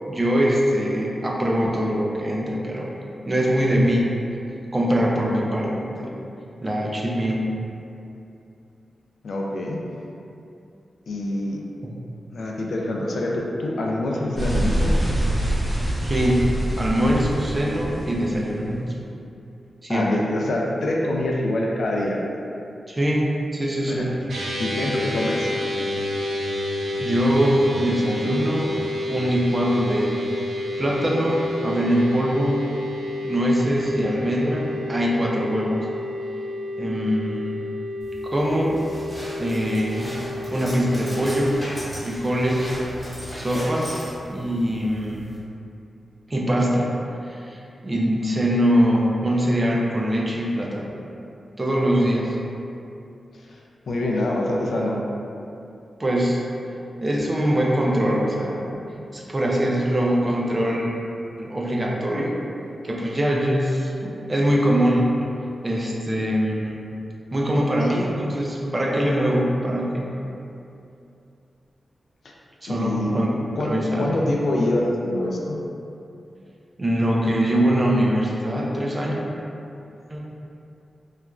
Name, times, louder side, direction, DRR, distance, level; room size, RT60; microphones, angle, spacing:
voice 1, 0.1-2.9 3.3-4.1 4.7-6.1 6.6-7.5 11.8-11.9 16.0-16.5 16.8-18.9 19.8-20.2 22.9-23.2 23.5-24.1 27.0-28.7 29.1-30.2 30.8-32.7 33.2-35.9 36.8-37.6 38.3-38.8 39.4-40.1 40.5-41.6 42.0-42.7 43.3-43.9 44.3-45.3 46.3-46.9 47.2-47.6 47.8-50.9 51.6-52.4 56.0-56.4 57.0-58.8 59.1-60.9 61.4-62.3 62.8-65.1 65.6-66.8 67.3-70.1 72.6-73.3 73.6-74.1 76.8-79.2 80.1-80.2, equal, 25° right, -3 dB, 0.3 m, -22 dB
voice 2, 9.2-9.8 11.1-11.6 12.3-14.9 19.9-22.2 23.9-24.1 24.6-25.5 53.9-55.0 63.1-63.4 72.7-73.1 73.6-75.6, left 1 dB, 65° left, -2 dB, 0.3 m, -25 dB
sound 1, 14.4-18.7, right 1 dB, 60° right, 0.8 m, -25 dB
sound 2, 24.3-41.6, left 1 dB, 80° right, 0.5 m, -30 dB
sound 3, 38.0-45.4, equal, 5° left, 1.2 m, -37 dB
3.0 x 2.4 x 2.2 m, 2.7 s
wide cardioid pair, 140°, 0 cm